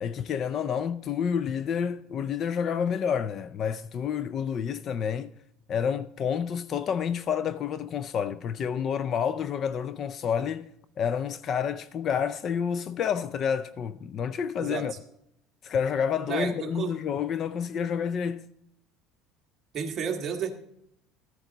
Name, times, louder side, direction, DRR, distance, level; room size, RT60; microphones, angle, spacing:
voice 1, 0.0-5.3 5.7-10.7 11.0-14.9 15.6-18.5, left 7 dB, 35° left, 0.4 m, -29 dB
voice 2, 16.3-17.0 19.7-20.5, right 6 dB, 30° right, 1.5 m, -31 dB
14.0 x 9.6 x 3.9 m
cardioid pair, 160°, 0 cm